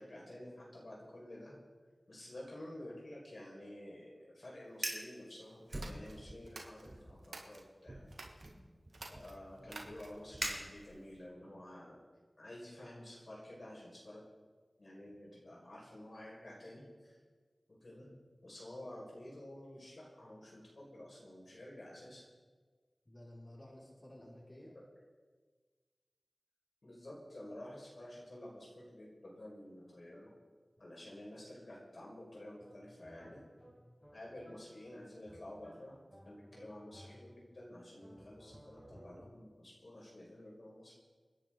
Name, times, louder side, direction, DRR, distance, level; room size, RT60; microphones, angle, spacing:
voice 1, 0.0-1.6 2.1-8.1 9.1-12.0 12.4-14.2 14.8-17.2 17.8-18.1 18.4-22.3 26.8-30.3 30.8-33.4 34.1-36.0 36.3-40.9, left 1 dB, 60° left, -4 dB, 5.6 m, -51 dB
Fire, 4.7-5.1 5.7-6.5 6.8-7.2 7.9-11.2, right 1 dB, 40° right, 3.7 m, -43 dB
sound 1, 5.7-7.7 8.1-8.5 8.9-10.3, right 3 dB, 90° right, 1.9 m, -51 dB
voice 2, 23.0-24.7, left 1 dB, 35° left, -6 dB, 5.9 m, -54 dB
sound 2, 32.6-37.6 38.0-39.5, equal, 10° left, 5.6 m, -59 dB
29.0 x 10.5 x 4.0 m, 1.4 s
cardioid pair, 40°, 0 cm